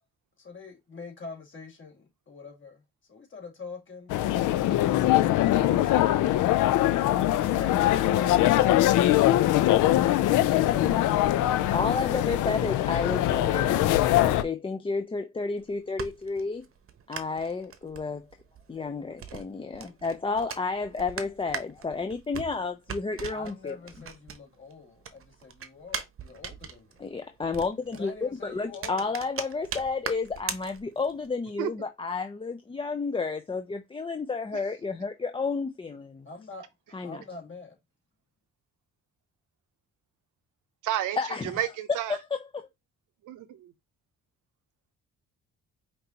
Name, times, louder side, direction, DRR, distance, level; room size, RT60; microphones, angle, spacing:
voice 1, 0.4-2.8 3.1-4.1 4.7-6.7 7.4-8.8 23.3-27.1 27.9-29.1 36.2-36.7 37.0-37.8, left 4 dB, 40° left, 2.2 m, -44 dB
sound 1, 4.1-14.4, left 14 dB, 80° left, 0.5 m, -22 dB
voice 2, 10.7-11.5 11.7-16.6 17.1-18.3 18.7-23.7 27.0-36.3 36.9-37.2 41.2-41.6 42.3-42.6, left 4 dB, 20° left, 0.5 m, -31 dB
sound 2, 15.5-24.7 25.0-31.3, right 7 dB, 45° right, 0.8 m, -40 dB
voice 3, 40.8-42.2 43.2-43.7, right 12 dB, 80° right, 0.7 m, -31 dB
5.2 x 2.7 x 2.9 m
cardioid pair, 90°, 30 cm